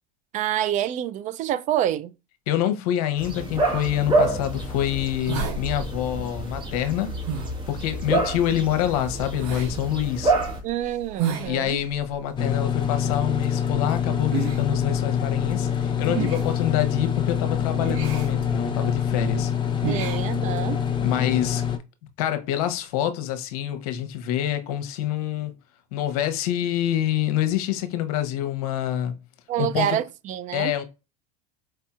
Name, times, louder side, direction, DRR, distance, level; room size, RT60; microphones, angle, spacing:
voice 1, 0.3-2.1 10.6-11.8 19.9-20.8 29.5-30.7, right 11 dB, 40° right, 0.4 m, -27 dB
voice 2, 2.5-7.1 7.7-10.3 11.5-19.5 19.9-20.0 21.0-21.6 22.2-25.5 25.9-29.1 29.6-30.0 30.5-30.8, left 11 dB, 70° left, 0.8 m, -26 dB
sound 1, 3.2-10.6, right 2 dB, 25° right, 1.5 m, -27 dB
sound 2, 4.4-21.0, right 6 dB, 60° right, 1.1 m, -36 dB
sound 3, 12.4-21.8, left 8 dB, 25° left, 0.7 m, -25 dB
4.6 x 2.7 x 2.3 m
hypercardioid pair, 100°, 19 cm